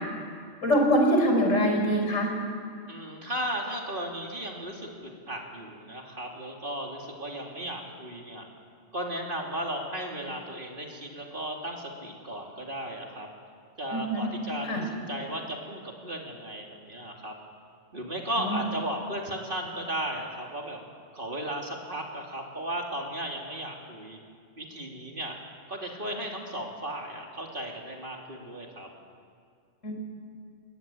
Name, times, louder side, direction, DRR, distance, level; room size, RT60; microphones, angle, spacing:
voice 1, 0.6-2.3 13.9-14.3 14.6-14.8 18.4-18.6 29.8-29.9, equal, 85° left, 1 dB, 5.0 m, -23 dB
voice 2, 2.9-8.4 8.9-13.3 13.8-17.3 17.9-20.8 21.1-24.2 24.6-25.3 25.7-28.9, right 1 dB, 45° right, 0 dB, 3.2 m, -35 dB
21.5 x 21.5 x 9.2 m, 2.2 s
omnidirectional pair, 1.3 m